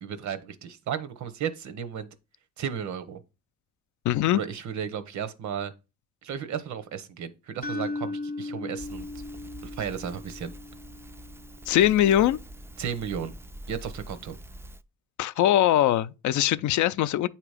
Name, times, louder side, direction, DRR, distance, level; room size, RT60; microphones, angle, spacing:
voice 1, 0.0-2.1 2.6-3.2 4.3-5.7 6.2-9.1 9.6-10.5 12.8-13.3 13.7-14.4, right 8 dB, 70° right, 0.9 m, -34 dB
voice 2, 4.0-4.4 11.7-12.4 15.2-17.3, left 12 dB, 70° left, 0.5 m, -21 dB
sound 1, 7.6-11.7, left 2 dB, 30° left, 0.7 m, -37 dB
Crackle, 8.8-14.8, right 1 dB, 10° right, 0.3 m, -44 dB
8.6 x 2.9 x 4.8 m
cardioid pair, 90°, 30 cm